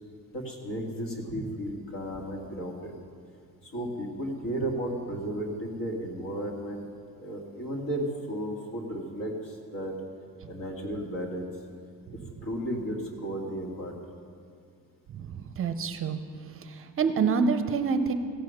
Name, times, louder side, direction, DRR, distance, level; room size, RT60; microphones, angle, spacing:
voice 1, 0.3-2.9 3.6-6.9 7.2-9.9 10.5-11.5 12.4-13.9, right 1 dB, 65° left, 0 dB, 2.2 m, -34 dB
voice 2, 15.1-16.2 16.6-18.1, right 5 dB, 40° right, 9 dB, 0.5 m, -27 dB
16.0 x 7.7 x 6.4 m, 2.4 s
cardioid pair, 175°, 36 cm